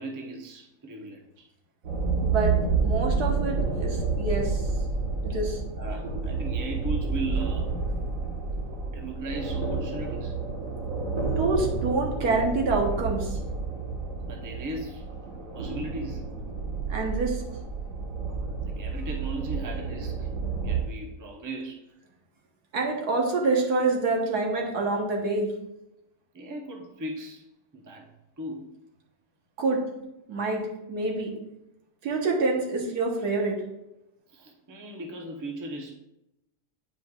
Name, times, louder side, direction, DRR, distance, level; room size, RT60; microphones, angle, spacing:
voice 1, 0.0-1.5 5.8-7.8 8.9-10.4 14.2-15.1 15.5-16.3 18.7-20.3 20.6-21.9 26.3-27.5 27.7-28.7 34.3-35.9, right 2 dB, 20° right, 1 dB, 0.6 m, -37 dB
sound 1, 1.8-20.8, right 4 dB, 60° right, 1.6 m, -30 dB
voice 2, 2.2-2.6 2.8-4.7 5.2-5.6 11.4-13.4 16.9-17.4 22.7-25.5 29.6-29.8 30.3-30.6 30.9-31.3 32.0-33.6, right 3 dB, 85° right, 0 dB, 1.7 m, -26 dB
9.2 x 5.1 x 2.4 m, 0.90 s
omnidirectional pair, 1.6 m